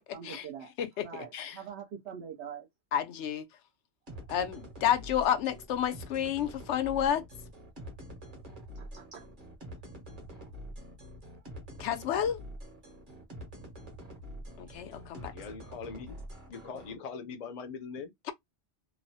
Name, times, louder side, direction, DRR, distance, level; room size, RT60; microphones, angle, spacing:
voice 1, 0.0-0.7 1.0-2.7 8.8-9.3 10.4-10.5, right 8 dB, 75° right, 0.8 m, -44 dB
voice 2, 0.8-1.6 2.9-3.4 4.3-7.2 11.8-12.4 14.6-15.3, left 9 dB, 90° left, 0.9 m, -30 dB
sound 1, 4.1-16.9, equal, 50° right, 1.2 m, -46 dB
voice 3, 15.3-16.2 16.5-18.1, left 5 dB, 50° left, 0.5 m, -41 dB
3.0 x 2.0 x 2.6 m
omnidirectional pair, 1.2 m